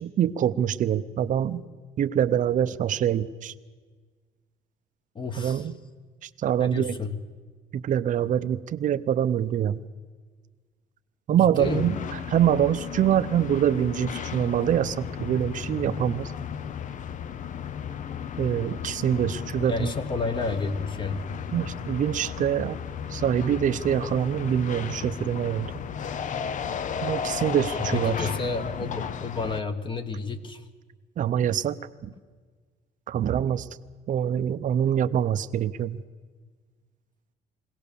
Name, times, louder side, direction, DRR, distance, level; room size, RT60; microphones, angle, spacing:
voice 1, 0.0-1.6 2.0-3.5 5.4-5.8 6.2-7.0 7.7-9.8 11.3-12.0 12.3-16.3 18.4-19.9 21.5-22.8 23.1-25.7 27.0-28.3 31.2-32.1 33.1-33.7 34.1-36.0, right 10 dB, 50° right, 11 dB, 0.7 m, -25 dB
voice 2, 5.1-5.7 6.6-7.2 11.3-11.8 19.6-21.3 27.8-30.6, left 4 dB, 30° left, 8 dB, 1.4 m, -31 dB
sound 1, 11.6-29.6, left 7 dB, 50° left, 0.8 m, -34 dB
22.0 x 17.5 x 7.0 m, 1.5 s
cardioid pair, 110°, 17 cm